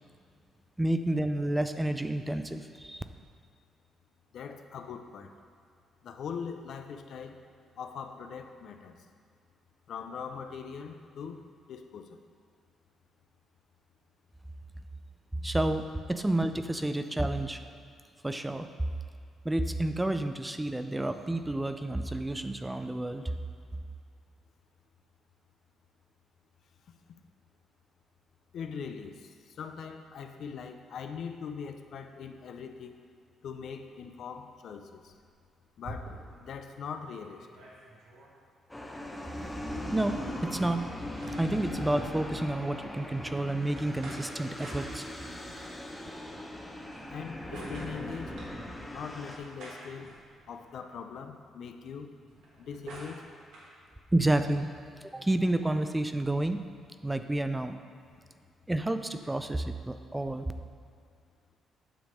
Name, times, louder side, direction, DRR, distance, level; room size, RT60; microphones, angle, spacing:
voice 1, 0.8-3.0 15.4-17.6 18.2-18.7 19.4-23.3 39.9-40.8 41.4-45.1 54.1-54.7 55.0-56.6 57.0-57.8 58.7-60.5, right 1 dB, 10° right, 9 dB, 0.4 m, -30 dB
voice 2, 4.3-5.3 6.0-7.4 7.8-9.1 9.9-11.4 11.7-12.2 28.5-32.9 33.4-35.1 35.8-36.1 36.4-37.5 47.1-48.4 48.9-50.1 50.5-52.2 52.6-53.3 58.2-58.3, left 6 dB, 65° left, 7 dB, 0.6 m, -41 dB
sound 1, 35.0-36.5 37.0-37.1 37.2-38.3 40.0-41.8 43.8-45.4 46.8-48.6 49.3-50.7 52.2-53.7, right 1 dB, 80° right, 1.8 m, -48 dB
sound 2, 38.7-49.4, left 1 dB, 10° left, 0.8 m, -39 dB
9.0 x 3.5 x 6.3 m, 2.2 s
cardioid pair, 90°, 0 cm